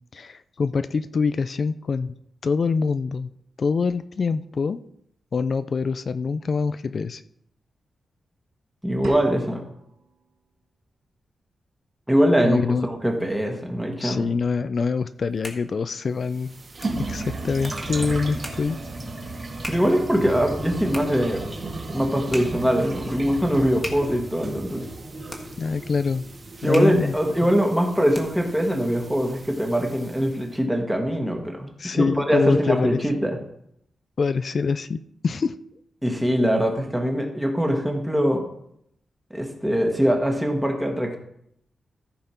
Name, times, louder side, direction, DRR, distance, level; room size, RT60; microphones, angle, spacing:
voice 1, 0.1-2.1 2.4-3.3 3.6-4.8 5.3-7.2 12.4-12.9 14.0-16.6 17.0-18.8 25.6-26.2 26.6-27.2 27.4-27.5 31.8-33.0 34.2-35.6, left 5 dB, 45° left, 13 dB, 0.4 m, -25 dB
voice 2, 8.8-9.6 12.1-14.3 19.7-21.5 21.9-24.9 26.6-33.4 36.0-38.4 39.3-41.2, equal, 5° right, 2 dB, 1.6 m, -22 dB
sound 1, 9.0-10.0, right 5 dB, 80° right, 1.1 m, -39 dB
sound 2, 15.1-28.6, left 1 dB, 15° left, 1.6 m, -42 dB
sound 3, 16.2-30.5, right 2 dB, 35° right, 2.1 m, -35 dB
14.5 x 5.6 x 4.4 m, 0.73 s
wide cardioid pair, 140°, 0 cm